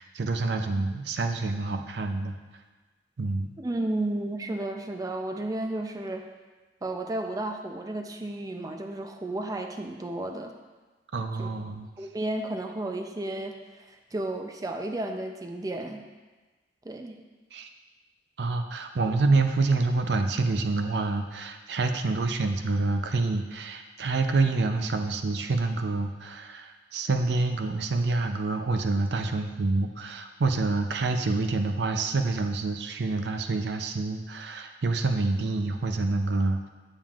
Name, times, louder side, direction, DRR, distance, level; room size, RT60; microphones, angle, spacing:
voice 1, 0.0-2.3 3.2-3.5 11.1-11.9 17.5-17.7 18.4-36.7, right 3 dB, 70° right, 6 dB, 0.5 m, -27 dB
voice 2, 3.6-6.3 6.8-10.6 11.4-11.5 12.0-16.0 16.8-17.2, right 1 dB, 20° right, 4 dB, 0.5 m, -33 dB
8.8 x 7.3 x 2.4 m, 1.3 s
head